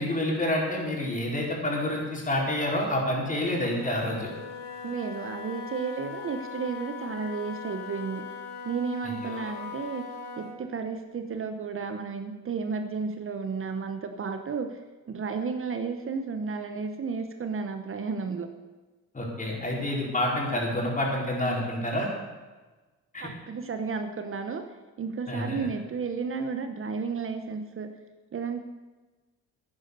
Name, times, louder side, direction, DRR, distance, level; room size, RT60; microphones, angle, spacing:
voice 1, 0.0-4.3 9.0-9.5 19.1-22.1 23.1-23.3 25.3-25.6, left 1 dB, 25° left, -2 dB, 4.6 m, -28 dB
Wind instrument woodwind instrument, 3.4-10.6, left 5 dB, 90° left, 1.9 m, -40 dB
voice 2, 4.8-8.3 8.6-14.8 15.1-18.5 23.2-24.6 25.0-27.9 28.3-28.6, right 5 dB, 45° right, 7 dB, 1.1 m, -33 dB
11.0 x 9.7 x 6.8 m, 1.3 s
cardioid pair, 90°, 30 cm